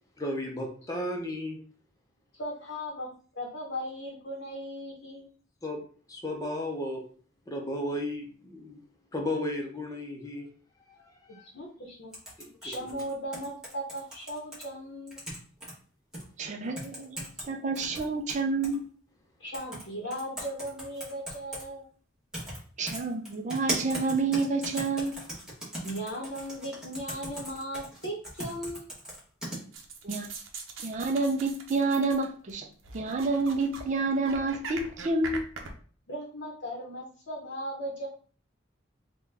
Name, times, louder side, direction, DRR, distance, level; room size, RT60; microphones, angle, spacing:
voice 1, 0.2-1.6 5.6-5.8 6.1-7.0 7.5-8.8 9.1-10.5 10.9-11.4 12.4-12.8, left 1 dB, 20° left, 0.6 m, -34 dB
voice 2, 2.4-3.1 3.4-5.3 11.5-12.1 12.6-15.2 19.4-21.9 25.7-28.8 36.1-38.1, equal, 60° left, 0.8 m, -37 dB
sound 1, 12.1-14.6 15.1-15.7 16.1-16.2 16.8-17.5 17.8-18.8 19.5-19.8 20.1-21.6 22.3-22.6 22.9-29.6, right 1 dB, 5° right, 1.0 m, -38 dB
voice 3, 16.4-18.8 22.8-25.2 30.0-30.3 30.8-32.7 32.9-35.4, right 3 dB, 35° right, 0.4 m, -29 dB
sound 2, 29.7-32.5 32.8-33.8 34.1-35.7, right 4 dB, 75° right, 0.7 m, -41 dB
3.7 x 2.2 x 3.3 m
head